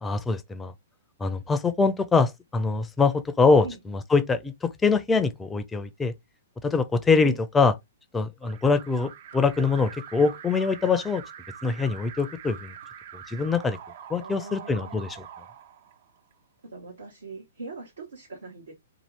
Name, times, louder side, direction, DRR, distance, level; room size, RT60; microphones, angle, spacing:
voice 1, 0.0-0.7 1.2-6.1 6.6-7.7 8.1-11.2 11.6-12.7 13.1-13.8 14.1-15.1, left 4 dB, 10° left, 0.4 m, -24 dB
Alarm, 8.4-16.3, right 8 dB, 50° right, 0.4 m, -44 dB
voice 2, 14.2-15.1 16.6-18.7, right 3 dB, 80° right, 1.1 m, -41 dB
2.7 x 2.4 x 3.2 m
hypercardioid pair, 120°, 0 cm